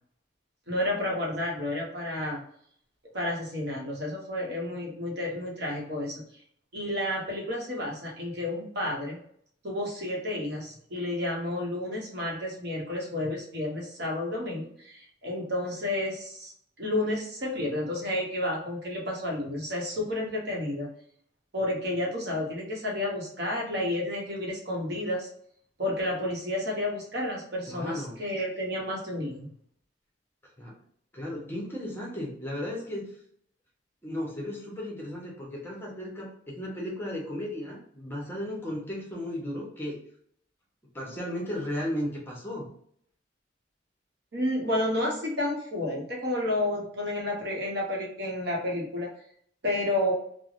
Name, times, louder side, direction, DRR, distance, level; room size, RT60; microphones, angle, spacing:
voice 1, 0.7-2.4 3.1-6.2 6.7-9.2 9.6-20.9 21.5-25.3 25.8-29.5 44.3-49.1 49.6-50.1, left 1 dB, 60° right, -2 dB, 0.8 m, -31 dB
voice 2, 27.7-28.2 30.6-30.8 31.1-33.2 34.0-40.0 40.9-42.7, left 1 dB, 10° left, -3 dB, 0.7 m, -35 dB
3.2 x 2.0 x 2.5 m, 0.64 s
head